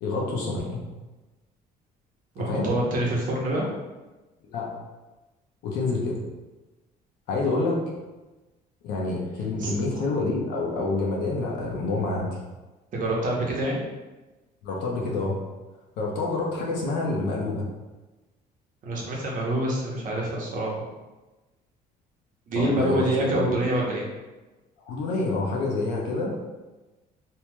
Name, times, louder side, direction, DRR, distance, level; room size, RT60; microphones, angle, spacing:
voice 1, 0.0-0.8 2.4-2.7 4.5-4.8 5.6-6.2 7.3-7.8 8.8-12.4 14.6-15.4 16.0-17.7 22.5-23.5 24.8-26.5, left 3 dB, 85° left, -2 dB, 0.8 m, -27 dB
voice 2, 2.4-3.7 9.6-9.7 12.9-13.8 18.8-20.8 22.5-24.1, right 1 dB, 50° right, -3 dB, 0.8 m, -26 dB
3.0 x 2.7 x 2.2 m, 1.1 s
cardioid pair, 110°, 17 cm